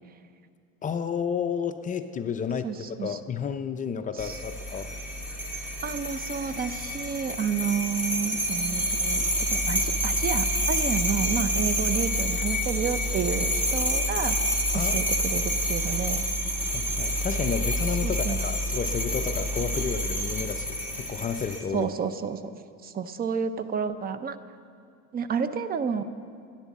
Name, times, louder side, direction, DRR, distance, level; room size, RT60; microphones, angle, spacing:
voice 1, 0.8-4.9 14.7-15.1 16.6-21.9, left 6 dB, 25° left, 9 dB, 0.5 m, -31 dB
voice 2, 2.6-3.2 4.2-4.4 5.8-9.2 9.5-14.4 14.7-16.3 18.0-18.4 21.7-22.5 22.8-24.4 25.1-26.0, right 7 dB, 30° right, 12 dB, 0.6 m, -30 dB
sound 1, 4.2-21.6, equal, 5° right, 1.9 m, -28 dB
14.5 x 10.5 x 7.3 m, 2.3 s
supercardioid pair, 120°, 30 cm